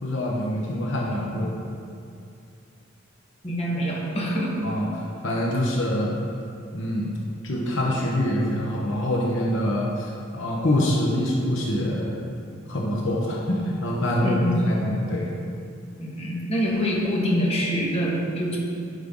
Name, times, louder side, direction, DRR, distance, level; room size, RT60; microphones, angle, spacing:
voice 1, 0.0-1.5 4.6-6.2 6.7-7.1 7.4-12.2 12.7-15.3, left 1 dB, 60° left, -3 dB, 1.1 m, -25 dB
voice 2, 3.4-4.6 14.2-14.7 16.0-18.6, equal, 30° left, -4 dB, 1.4 m, -25 dB
11.0 x 5.5 x 3.8 m, 2.5 s
head